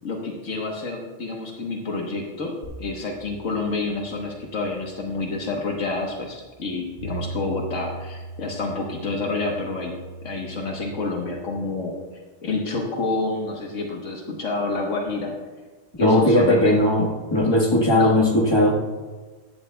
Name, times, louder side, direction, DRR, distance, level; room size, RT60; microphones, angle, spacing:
voice 1, 0.0-9.9 10.2-11.9 12.4-15.3 16.0-16.7 17.9-18.2, left 3 dB, 80° left, 0 dB, 1.5 m, -28 dB
sound 1, 2.6-11.4, right 3 dB, 60° right, 4.1 m, -40 dB
voice 2, 16.0-18.8, left 1 dB, 20° left, 1 dB, 1.3 m, -18 dB
14.5 x 11.5 x 2.2 m, 1.3 s
omnidirectional pair, 1.3 m